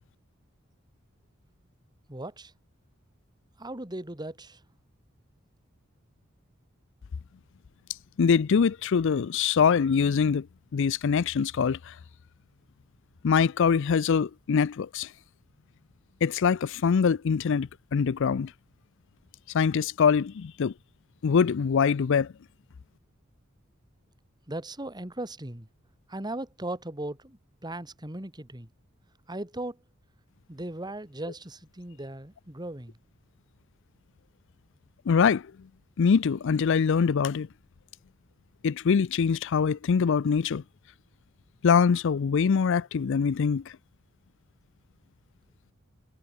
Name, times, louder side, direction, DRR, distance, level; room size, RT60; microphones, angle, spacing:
voice 1, 2.1-2.5 3.6-4.6 24.5-25.7 26.1-28.7 29.3-29.8 30.5-33.0, right 1 dB, 20° right, 2.6 m, -37 dB
voice 2, 8.2-10.5 10.7-11.9 13.2-15.1 16.2-18.5 19.5-20.7 21.2-22.3 35.1-35.5 36.0-37.5 38.6-40.6 41.6-43.6, left 6 dB, 65° left, 0.4 m, -23 dB
head